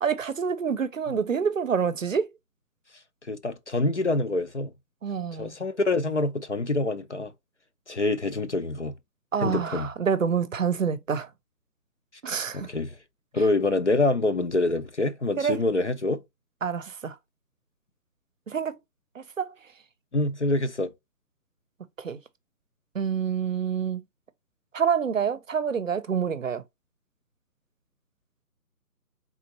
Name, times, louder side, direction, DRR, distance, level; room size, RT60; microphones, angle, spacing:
voice 1, 0.0-2.3 5.0-5.5 9.3-11.3 12.2-12.7 15.4-15.6 16.6-17.1 18.5-18.8 19.2-19.5 22.0-22.2 22.9-24.0 24.7-26.6, right 7 dB, 55° right, 0.6 m, -27 dB
voice 2, 3.2-4.7 5.4-7.3 7.9-8.9 9.4-9.9 12.5-13.0 13.3-16.2 20.1-20.9, left 2 dB, 50° left, 0.5 m, -26 dB
4.4 x 3.7 x 2.8 m
hypercardioid pair, 165°, 48 cm